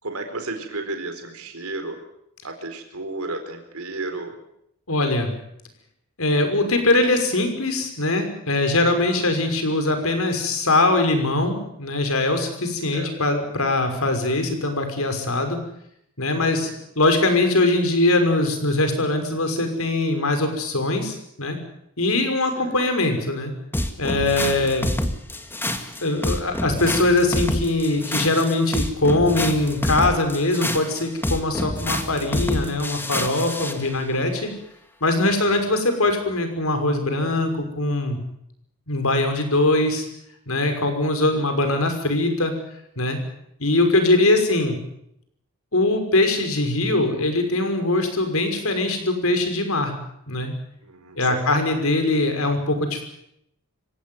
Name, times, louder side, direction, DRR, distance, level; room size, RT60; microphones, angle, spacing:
voice 1, 0.0-2.0 2.4-4.4 9.2-9.5 12.9-13.1 16.4-16.7 22.6-22.8 24.6-24.8 35.3-35.6 41.3-41.4 50.8-51.5, right 2 dB, 75° right, 6 dB, 4.2 m, -33 dB
voice 2, 4.9-5.3 6.2-15.6 16.2-16.7 17.0-21.6 22.0-23.5 24.0-25.0 26.0-34.5 35.0-38.2 38.9-40.1 40.5-42.5 43.0-43.2 43.6-44.8 45.7-49.9 50.3-50.5 51.2-53.0, left 2 dB, 70° left, 6 dB, 5.8 m, -22 dB
sound 1, 23.7-33.8, left 1 dB, 10° left, 1.9 m, -27 dB
26.5 x 17.0 x 9.4 m, 0.76 s
head